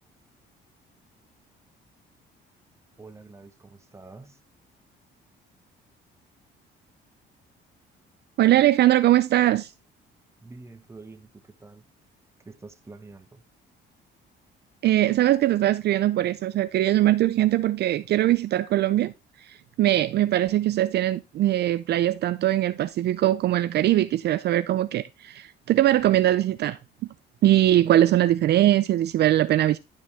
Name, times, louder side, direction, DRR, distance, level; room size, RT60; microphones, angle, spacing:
voice 1, 3.0-4.3 10.4-11.3 11.6-11.8 12.5-13.4, right 3 dB, 15° right, 1.0 m, -46 dB
voice 2, 8.4-9.7 14.8-19.1 19.4-26.8 27.4-29.8, right 13 dB, 55° right, 0.4 m, -21 dB
11.0 x 5.2 x 3.4 m
cardioid pair, 130°, 20 cm